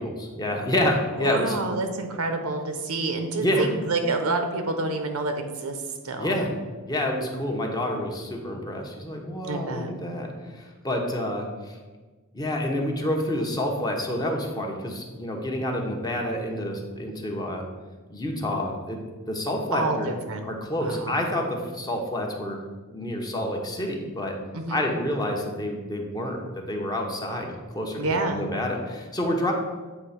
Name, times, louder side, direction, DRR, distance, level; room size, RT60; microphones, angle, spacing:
voice 1, 0.0-1.6 3.4-3.7 6.2-6.5 6.9-11.8 12.3-17.6 18.1-19.0 19.3-20.1 20.4-22.6 22.9-24.4 24.7-29.5, left 1 dB, 20° left, 1 dB, 0.9 m, -28 dB
voice 2, 1.2-5.8 6.0-6.4 9.4-9.9 19.7-20.4 20.8-21.1 24.5-24.8 28.0-28.4, right 2 dB, 80° right, 6 dB, 0.9 m, -28 dB
8.2 x 3.1 x 5.8 m, 1.3 s
head